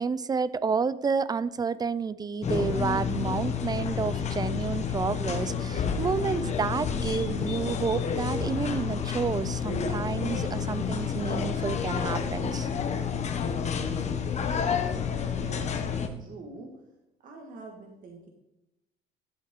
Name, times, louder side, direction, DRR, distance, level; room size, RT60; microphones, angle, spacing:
voice 1, 0.0-12.7, right 5 dB, 25° right, 17 dB, 0.4 m, -30 dB
sound 1, 2.4-16.1, left 6 dB, 40° left, 1.1 m, -30 dB
voice 2, 15.4-16.7 17.2-18.3, right 3 dB, 55° right, 2 dB, 1.7 m, -45 dB
11.5 x 7.6 x 3.7 m, 0.92 s
cardioid pair, 110°, 17 cm